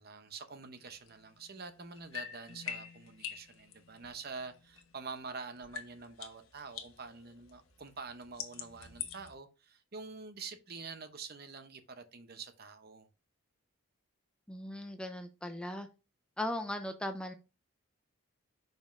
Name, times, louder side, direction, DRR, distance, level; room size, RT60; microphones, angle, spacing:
voice 1, 0.0-13.1, right 4 dB, 45° right, 0.8 m, -46 dB
sound 1, 0.8-5.3 5.6-9.3, left 8 dB, 70° left, 1.0 m, -46 dB
voice 2, 14.5-15.9 16.4-17.3, left 1 dB, 5° left, 0.5 m, -38 dB
7.1 x 5.2 x 2.6 m
head